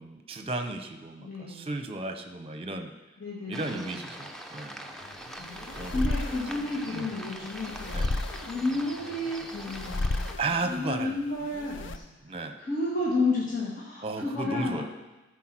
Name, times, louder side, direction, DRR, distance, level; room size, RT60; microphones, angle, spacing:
voice 1, 0.0-2.9 3.5-4.9 5.7-6.2 6.9-7.1 7.9-8.2 10.4-11.1 12.2-12.6 14.0-14.9, right 3 dB, 30° right, 7 dB, 0.8 m, -34 dB
voice 2, 1.2-1.7 3.2-3.9 5.4-8.2 8.4-10.2 10.6-12.0 12.6-14.9, left 2 dB, 45° left, -5 dB, 1.8 m, -31 dB
sound 1, 3.5-10.3, right 1 dB, ahead, 0.7 m, -43 dB
sound 2, 5.0-12.0, left 2 dB, 80° left, 0.6 m, -34 dB
14.0 x 4.7 x 6.1 m, 1.1 s
head